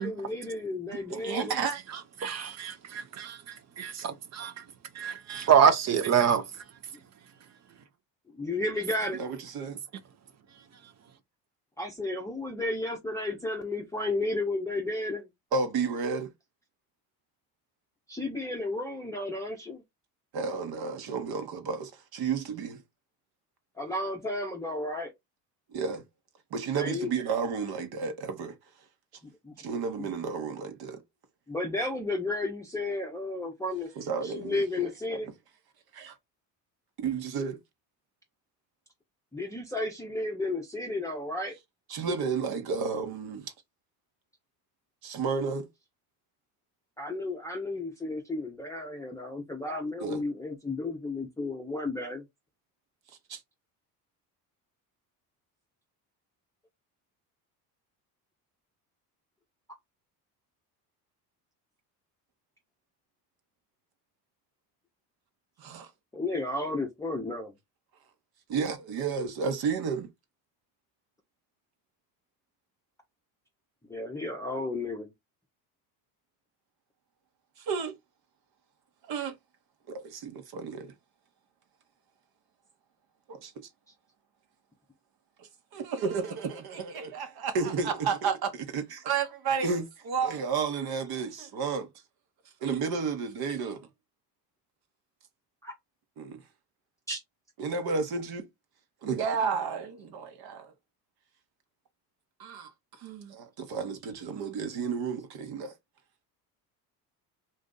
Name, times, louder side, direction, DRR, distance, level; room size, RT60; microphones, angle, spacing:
voice 1, 0.0-1.6 8.3-9.2 11.8-15.3 18.1-19.8 23.8-25.1 26.8-27.1 29.2-29.5 30.0-30.1 31.5-33.9 34.2-35.3 39.3-41.5 47.0-52.2 66.1-67.5 73.9-75.1 95.6-95.7 97.1-97.2, left 2 dB, 5° left, 0.7 m, -33 dB
voice 2, 1.1-1.8 9.1-9.8 15.5-16.3 20.3-22.8 25.7-26.0 26.5-28.5 29.6-31.0 34.0-34.9 35.9-36.1 37.0-37.6 41.9-43.5 45.0-45.7 50.0-50.2 53.3-53.4 65.6-65.9 68.5-70.1 77.6-78.0 79.0-79.4 79.9-80.9 83.3-83.7 85.4-91.9 92.6-93.8 96.2-96.4 97.6-98.5 99.0-100.7 102.4-105.7, right 5 dB, 50° right, 1.0 m, -32 dB
voice 3, 2.2-4.6 5.0-6.4, right 8 dB, 35° right, 0.6 m, -26 dB
2.6 x 2.5 x 3.8 m
hypercardioid pair, 75°, 47 cm